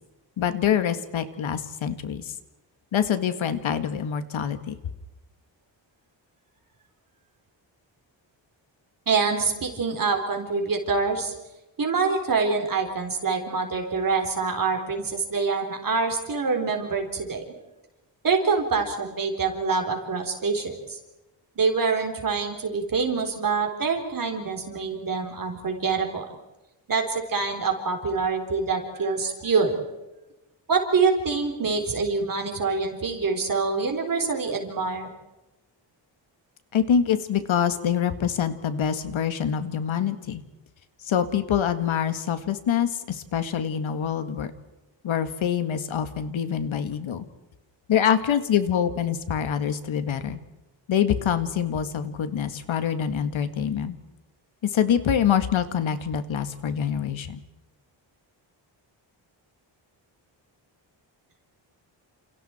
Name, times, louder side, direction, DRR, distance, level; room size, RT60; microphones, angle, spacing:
voice 1, 0.4-2.3 2.9-4.8 36.7-40.4 41.0-44.5 45.0-47.3 47.9-50.4 50.9-54.0 54.6-57.4, left 8 dB, 85° left, 10 dB, 2.1 m, -25 dB
voice 2, 9.1-11.3 11.8-17.4 18.2-21.0 21.6-26.3 26.9-29.8 30.7-35.1, right 4 dB, 45° right, 4 dB, 3.9 m, -25 dB
29.5 x 29.0 x 4.5 m, 1.0 s
wide cardioid pair, 160°, 46 cm